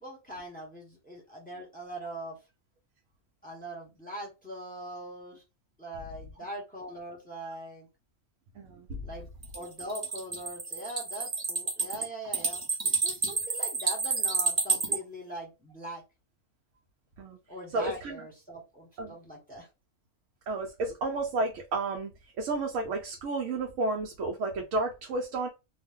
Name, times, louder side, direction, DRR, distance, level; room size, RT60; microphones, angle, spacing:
voice 1, 0.0-2.3 3.4-5.4 5.8-7.9 9.0-9.3 9.5-16.0 17.5-19.7, right 1 dB, 5° left, 0.9 m, -41 dB
voice 2, 8.6-9.0 17.2-17.4 17.7-18.2 19.0-19.1 20.5-22.1 22.4-25.5, right 3 dB, 70° right, 0.9 m, -31 dB
sound 1, 9.4-15.0, right 3 dB, 45° right, 0.5 m, -29 dB
2.4 x 2.1 x 3.5 m
omnidirectional pair, 1.4 m